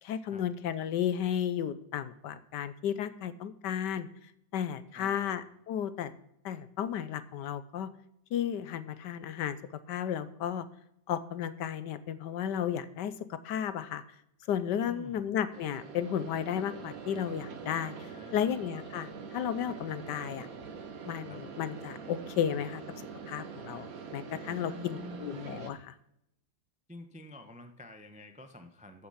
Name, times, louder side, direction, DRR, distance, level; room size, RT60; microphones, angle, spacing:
voice 1, 0.0-4.1 4.5-6.1 6.4-7.9 8.3-9.6 9.9-10.7 11.1-14.0 14.5-20.5 21.1-22.8 23.3-25.9, left 9 dB, 70° left, 14 dB, 1.2 m, -33 dB
voice 2, 4.9-5.4 14.9-15.3 17.9-18.6 21.2-21.4 24.6-25.3 26.9-29.1, left 2 dB, 10° right, 7 dB, 0.3 m, -48 dB
sound 1, 15.5-25.7, right 5 dB, 50° right, 1.5 m, -44 dB
14.0 x 6.9 x 5.6 m, 0.77 s
omnidirectional pair, 2.1 m